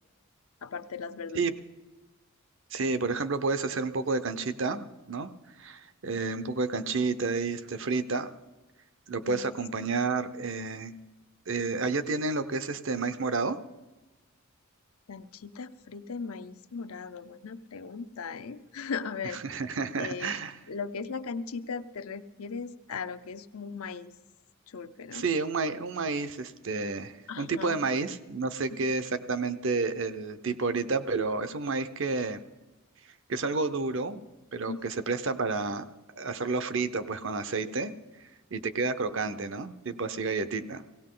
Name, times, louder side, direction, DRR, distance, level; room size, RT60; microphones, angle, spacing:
voice 1, 0.6-1.5 9.2-9.5 15.1-19.4 20.0-20.3 20.7-24.1 24.7-25.3 27.3-27.8 28.7-28.8 34.7-34.8, left 5 dB, 75° left, 10 dB, 0.6 m, -38 dB
voice 2, 2.7-5.3 5.6-8.3 9.1-10.9 11.5-13.6 19.4-20.5 25.1-32.4 33.3-34.2 34.5-35.9 36.2-37.9 38.5-40.8, right 4 dB, 55° right, 11 dB, 0.7 m, -30 dB
17.5 x 17.0 x 3.8 m, 1.1 s
head